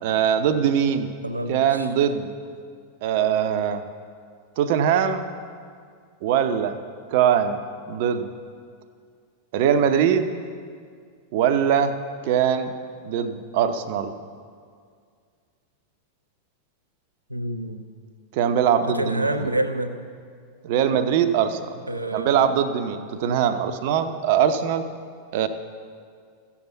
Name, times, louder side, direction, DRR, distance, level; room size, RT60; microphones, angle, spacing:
voice 1, 0.0-1.1 1.5-2.3 3.0-3.8 4.6-5.3 6.2-6.8 7.1-7.6 7.9-8.3 9.5-10.3 11.3-12.0 12.2-12.7 13.0-14.1 18.3-19.5 20.6-21.8 22.1-24.9 25.3-25.5, right 8 dB, 50° right, 9 dB, 0.8 m, -22 dB
voice 2, 1.2-1.9 17.3-17.8 18.9-20.1 21.9-22.5, right 1 dB, 85° right, 7 dB, 0.8 m, -27 dB
14.5 x 7.2 x 8.1 m, 2.1 s
figure-of-eight pair, 90°, 0 cm